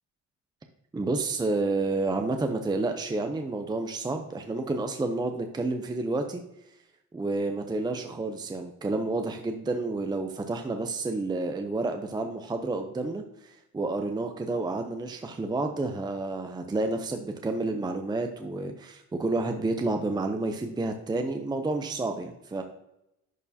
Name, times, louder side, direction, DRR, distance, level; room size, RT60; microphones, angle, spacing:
voice 1, 0.9-6.4 7.1-22.6, right 2 dB, 15° right, 5 dB, 0.5 m, -30 dB
11.0 x 4.4 x 2.7 m, 0.89 s
cardioid pair, 110°, 29 cm